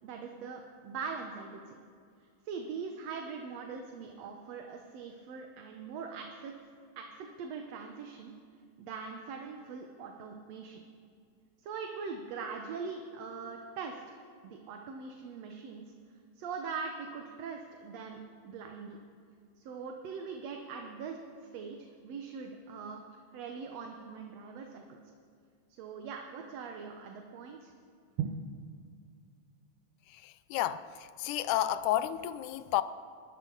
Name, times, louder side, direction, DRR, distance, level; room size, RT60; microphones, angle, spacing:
voice 1, 0.0-1.8 2.5-6.5 7.0-8.3 8.8-10.8 11.6-14.0 14.4-15.8 16.4-19.0 19.6-21.2 21.5-23.0 23.3-25.0 25.8-27.7 28.2-28.4, right 5 dB, 65° right, 2.0 m, -41 dB
voice 2, 30.1-32.8, left 13 dB, 90° left, 2.1 m, -31 dB
29.0 x 12.5 x 4.0 m
omnidirectional pair, 3.5 m